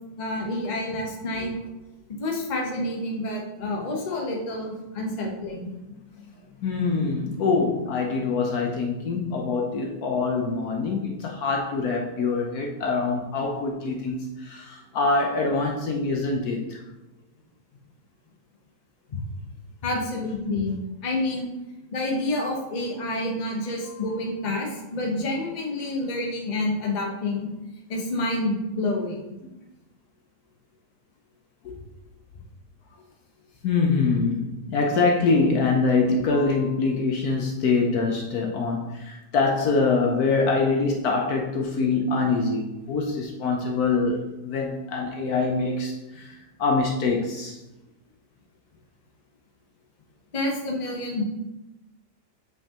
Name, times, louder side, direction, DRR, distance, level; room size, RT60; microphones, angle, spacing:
voice 1, 0.2-1.5 2.2-5.7 19.8-21.5 21.9-27.5 27.9-29.2 50.3-51.2, left 2 dB, 30° left, -1 dB, 1.0 m, -28 dB
voice 2, 6.6-16.6 25.0-25.2 33.6-44.2 44.4-46.3 46.6-47.6, left 4 dB, 65° left, 1 dB, 1.2 m, -24 dB
8.1 x 5.3 x 2.9 m, 1.0 s
omnidirectional pair, 1.8 m